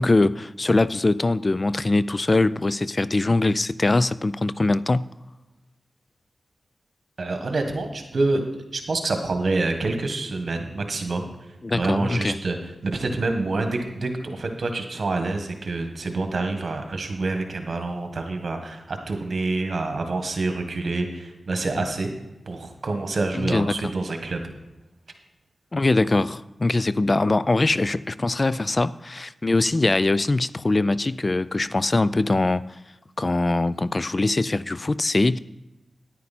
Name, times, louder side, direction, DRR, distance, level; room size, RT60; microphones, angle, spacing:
voice 1, 0.0-5.1 11.6-12.4 23.3-23.7 25.7-32.6 33.2-35.4, left 2 dB, 40° left, 17 dB, 0.3 m, -22 dB
voice 2, 7.2-8.4 8.7-11.3 11.7-12.6 12.8-22.1 22.5-24.4, right 3 dB, 65° right, 5 dB, 1.5 m, -27 dB
10.0 x 9.6 x 4.2 m, 1.0 s
cardioid pair, 55°, 0 cm